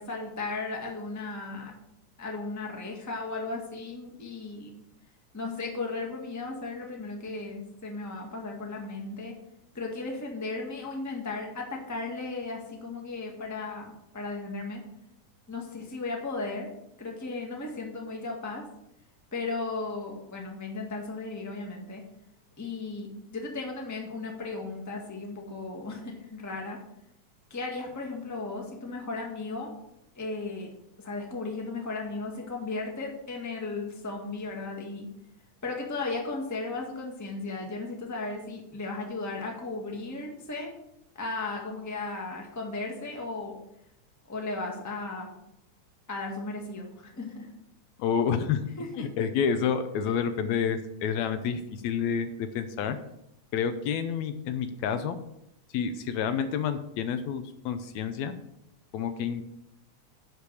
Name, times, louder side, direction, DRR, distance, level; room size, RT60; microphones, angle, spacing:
voice 1, 0.0-1.7 2.2-4.7 5.3-9.3 9.7-14.8 15.5-16.7 17.0-18.6 19.3-22.0 22.6-26.8 27.5-29.7 30.1-30.7 31.0-35.1 35.6-40.7 41.1-43.6 44.3-45.3 46.1-47.5 48.8-49.1, left 3 dB, 10° left, 0 dB, 1.1 m, -35 dB
voice 2, 48.0-48.6 48.9-53.0 53.5-55.2 55.7-58.3 58.9-59.4, left 7 dB, 75° left, 10 dB, 2.0 m, -29 dB
10.5 x 5.1 x 6.9 m, 0.80 s
omnidirectional pair, 3.4 m